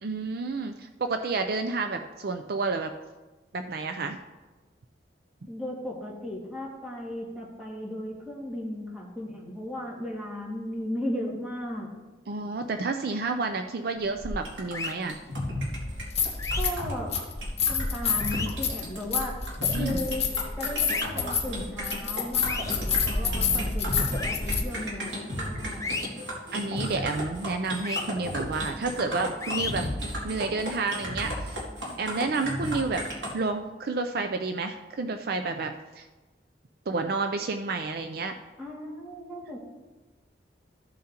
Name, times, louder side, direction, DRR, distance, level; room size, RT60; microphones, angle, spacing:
voice 1, 0.0-2.9 3.5-4.2 12.3-15.2 19.7-20.1 23.1-23.6 26.5-29.9 30.2-31.6 32.0-33.0 33.3-36.1 36.9-38.3, right 3 dB, 55° right, 7 dB, 0.5 m, -30 dB
voice 2, 5.5-11.9 16.6-17.2 17.7-19.4 19.8-20.2 20.6-26.0 32.2-32.3 38.6-39.6, left 1 dB, 5° right, -4 dB, 2.0 m, -36 dB
sound 1, 14.2-14.3 15.9-16.8 17.1-24.6, left 5 dB, 35° left, 1.4 m, -28 dB
sound 2, 14.4-33.3, equal, 90° right, 2.5 m, -34 dB
sound 3, 14.7-14.9 16.4-16.6 18.2-18.5 20.9-21.1 22.5-22.7 24.2-24.4 25.8-26.1 27.8-28.0 29.4-29.7, left 4 dB, 20° left, 0.6 m, -32 dB
14.0 x 7.5 x 2.9 m, 1.2 s
head